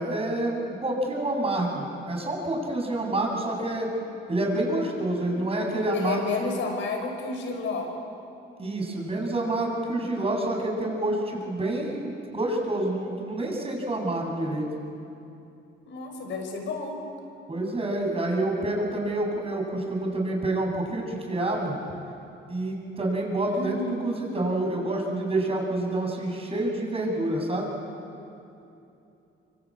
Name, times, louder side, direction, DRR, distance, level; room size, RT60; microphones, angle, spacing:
voice 1, 0.0-3.9 4.3-6.6 8.6-14.7 17.5-21.8 22.5-27.7, right 1 dB, 30° right, 1 dB, 7.3 m, -28 dB
voice 2, 5.9-7.9 15.9-17.0 23.5-24.1, left 4 dB, 70° left, 3 dB, 6.0 m, -31 dB
25.5 x 24.5 x 8.8 m, 2.8 s
cardioid pair, 90°, 20 cm